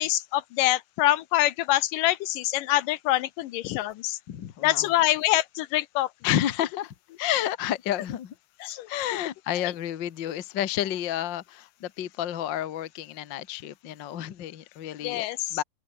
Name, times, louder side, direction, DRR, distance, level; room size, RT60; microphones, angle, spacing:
voice 1, 0.0-4.2 4.6-6.1 8.6-8.9 15.0-15.4, left 15 dB, 80° left, 2.4 m, -25 dB
voice 2, 4.3-4.9 6.2-8.3 8.9-15.6, left 11 dB, 60° left, 1.2 m, -30 dB
open air
omnidirectional pair, 3.9 m